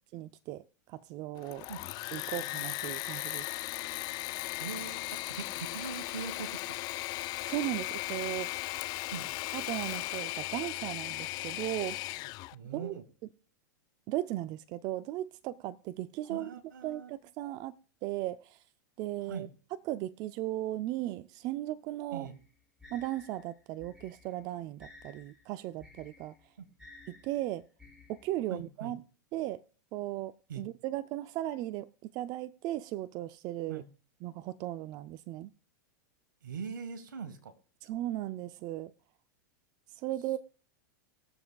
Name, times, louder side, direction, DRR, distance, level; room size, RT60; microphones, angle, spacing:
voice 1, 0.1-1.7 2.1-3.5 7.4-8.7 9.5-12.0 12.7-12.9 14.1-16.5 16.8-17.7 18.0-18.6 19.0-19.5 19.9-22.3 22.9-26.3 27.1-27.7 28.1-29.0 29.3-29.6 29.9-33.8 34.2-35.5 37.8-38.9 39.9-40.4, right 15 dB, 40° right, 0.4 m, -36 dB
Engine / Mechanisms, 1.3-12.5, left 20 dB, 40° left, 0.3 m, -37 dB
voice 2, 4.6-6.8 9.1-9.3 12.5-13.0 16.2-17.1 19.3-19.5 22.1-22.4 26.6-26.7 28.5-29.0 30.5-30.6 33.7-33.9 36.4-37.5, right 6 dB, 85° right, 1.5 m, -42 dB
sound 1, 22.2-28.6, left 3 dB, 5° right, 3.5 m, -56 dB
21.0 x 7.2 x 2.3 m
hypercardioid pair, 110°, 10 cm